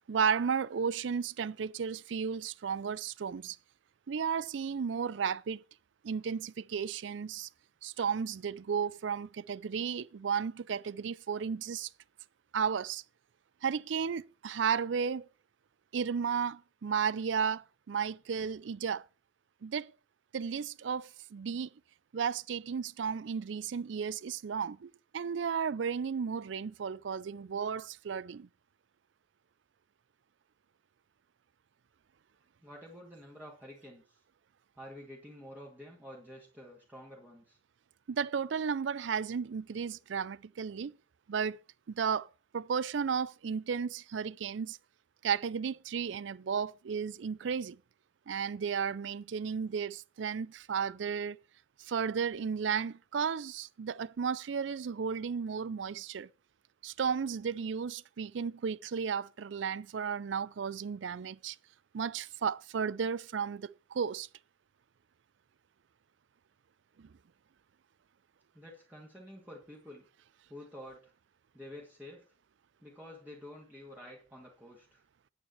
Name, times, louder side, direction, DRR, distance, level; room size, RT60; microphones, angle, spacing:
voice 1, 0.1-3.6 4.1-5.6 6.0-7.5 7.8-11.9 12.5-13.0 13.6-15.3 15.9-19.0 19.6-19.9 20.3-21.7 22.1-28.5 38.1-40.9 41.3-41.6 41.9-42.3 42.5-44.8 45.2-47.8 48.3-51.4 51.8-56.3 56.8-61.6 61.9-64.3 67.0-67.1, right 6 dB, 70° right, 0.4 m, -34 dB
voice 2, 32.6-34.2 34.8-37.6 68.5-70.0 70.5-71.1 71.5-72.3 72.8-75.0, left 1 dB, 10° right, 2.2 m, -49 dB
9.6 x 8.9 x 4.5 m
head